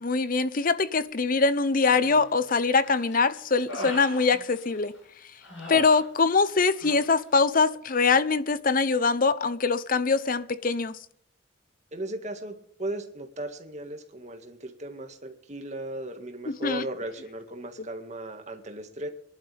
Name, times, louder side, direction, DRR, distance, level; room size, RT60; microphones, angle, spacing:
voice 1, 0.0-4.9 5.7-11.0 16.5-16.9, left 4 dB, 50° left, 0.8 m, -23 dB
Human voice, 1.8-2.4 2.8-5.0 5.4-6.5 6.7-7.0, left 1 dB, 80° left, 7.1 m, -40 dB
voice 2, 11.9-19.1, right 1 dB, 40° right, 1.9 m, -37 dB
22.5 x 11.5 x 3.5 m
head